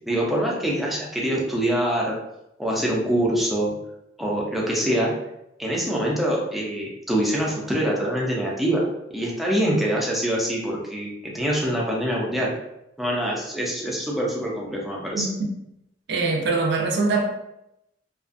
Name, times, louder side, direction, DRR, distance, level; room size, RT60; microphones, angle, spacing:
voice 1, 0.1-2.1 2.6-3.7 4.2-5.1 5.6-8.8 9.1-12.5 13.0-15.3, right 1 dB, ahead, -4 dB, 0.5 m, -24 dB
voice 2, 15.2-15.5 16.1-17.2, right 3 dB, 65° right, 2 dB, 0.5 m, -23 dB
2.5 x 2.3 x 2.5 m, 0.84 s
head